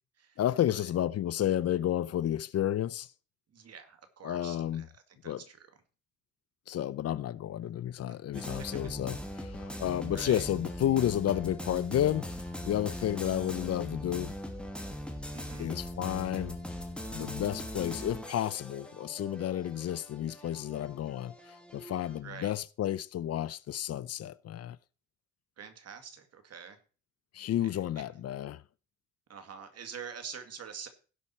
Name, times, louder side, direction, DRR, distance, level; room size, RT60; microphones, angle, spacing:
voice 1, 0.4-3.1 4.2-4.8 5.2-5.4 6.7-12.3 12.6-14.4 15.6-16.6 17.1-24.8 27.3-28.6, left 11 dB, 55° left, 0.5 m, -31 dB
voice 2, 3.5-5.7 8.1-8.2 10.0-10.5 15.3-15.7 22.2-22.5 25.6-26.8 27.6-28.0 29.3-30.9, right 7 dB, 55° right, 2.1 m, -46 dB
sound 1, 8.3-22.2, left 1 dB, 5° left, 2.2 m, -41 dB
16.5 x 5.7 x 4.3 m
cardioid pair, 90°, 30 cm